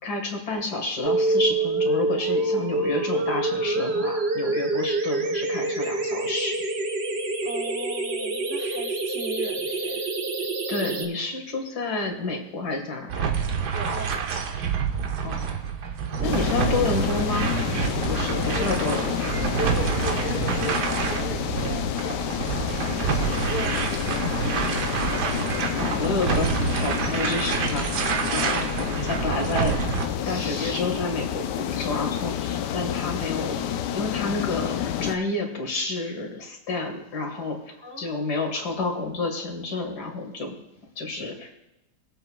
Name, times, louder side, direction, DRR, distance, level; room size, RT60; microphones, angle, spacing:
voice 1, 0.0-6.6 10.7-13.3 15.2-15.7 16.2-17.5 18.1-19.4 25.8-28.7 29.0-29.8 30.2-33.5 33.9-37.6 38.0-40.6 41.0-41.5, left 3 dB, 70° left, 3 dB, 2.3 m, -30 dB
sound 1, 1.0-11.0, right 2 dB, 45° right, 1.1 m, -26 dB
voice 2, 7.4-10.1 13.7-14.7 16.1-17.4 18.3-18.8 19.6-25.2 33.4-33.6 37.8-38.5, equal, 20° right, 2 dB, 0.3 m, -38 dB
sound 2, 13.1-30.1, right 6 dB, 75° right, 1.5 m, -27 dB
sound 3, 16.2-35.2, left 10 dB, 90° left, 1.3 m, -29 dB
21.0 x 7.9 x 2.3 m, 0.97 s
omnidirectional pair, 1.8 m